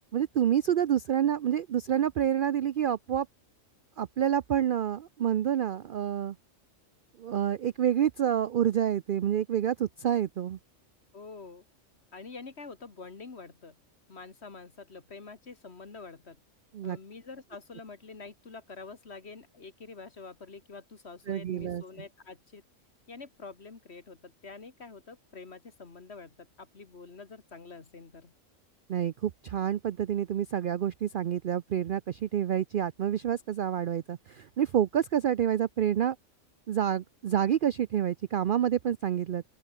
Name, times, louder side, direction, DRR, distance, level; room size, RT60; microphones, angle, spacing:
voice 1, 0.1-3.3 4.0-6.4 7.2-10.6 16.7-17.0 21.3-21.8 28.9-36.2 36.7-39.4, right 10 dB, 60° right, 0.5 m, -28 dB
voice 2, 11.1-11.6 12.1-13.8 14.1-16.4 16.8-22.6 23.1-28.3 38.8-38.9, left 4 dB, 55° left, 2.3 m, -46 dB
open air
omnidirectional pair, 1.4 m